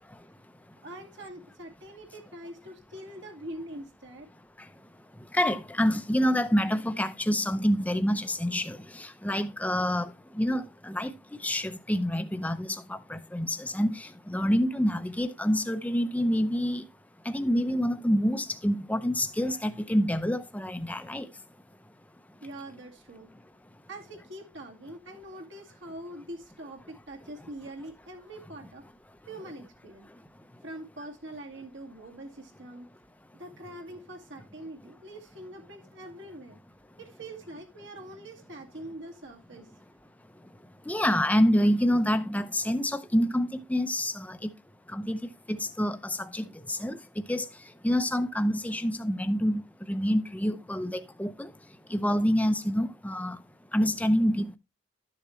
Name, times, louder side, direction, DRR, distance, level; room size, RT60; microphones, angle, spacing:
voice 1, 0.8-4.3 22.4-23.3 23.9-28.8 29.3-30.1 30.6-32.9 33.4-36.6 37.0-39.7, right 1 dB, 60° right, 2.1 m, -43 dB
voice 2, 5.3-11.1 11.4-16.8 17.2-21.3 40.9-44.5 44.9-47.0 47.3-47.5 47.8-51.5 51.9-53.4 53.7-54.6, equal, 5° left, 0.6 m, -27 dB
12.0 x 6.8 x 3.1 m
head